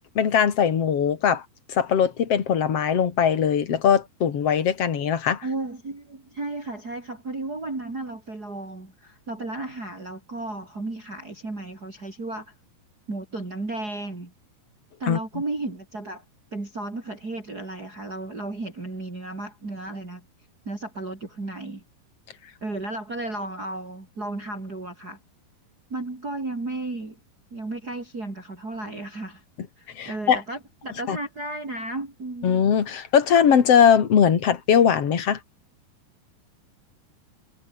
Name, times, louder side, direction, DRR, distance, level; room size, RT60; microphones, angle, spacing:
voice 1, 0.1-1.4 1.7-5.4 15.1-15.2 30.0-30.4 31.1-31.2 32.4-35.4, left 8 dB, 45° left, 3.0 m, -20 dB
voice 2, 5.4-12.5 13.1-14.3 15.0-16.2 16.5-20.2 20.7-21.8 22.6-25.2 25.9-27.2 27.5-29.4 29.8-32.5, right 2 dB, 25° right, 5.2 m, -34 dB
omnidirectional pair, 4.3 m